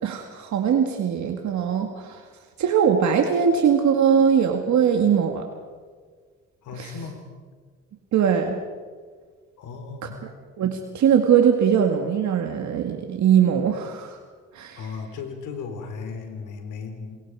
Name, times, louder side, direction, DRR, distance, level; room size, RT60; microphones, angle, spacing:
voice 1, 0.0-2.3 2.6-5.5 6.8-6.9 8.1-8.6 10.6-14.2 14.5-14.8, right 7 dB, 70° right, 4 dB, 2.1 m, -21 dB
voice 2, 6.6-7.3 9.6-10.1 14.7-17.2, left 5 dB, 85° left, 6 dB, 3.9 m, -36 dB
28.5 x 22.0 x 4.9 m, 1.5 s
cardioid pair, 90°, 30 cm